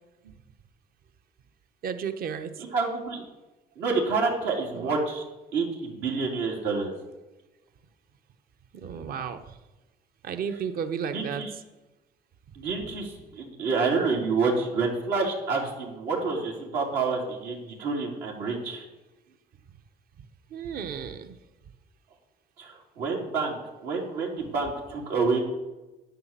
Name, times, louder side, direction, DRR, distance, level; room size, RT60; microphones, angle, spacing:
voice 1, 1.8-2.6 4.7-5.0 8.7-9.6 10.2-11.4 20.5-21.4, right 7 dB, 60° right, 9 dB, 1.1 m, -33 dB
voice 2, 2.7-3.2 3.8-5.2 5.5-6.9 11.1-11.5 12.5-18.8 22.6-25.4, right 4 dB, 85° right, -2 dB, 3.5 m, -28 dB
11.0 x 9.3 x 7.5 m, 1.1 s
cardioid pair, 110°, 17 cm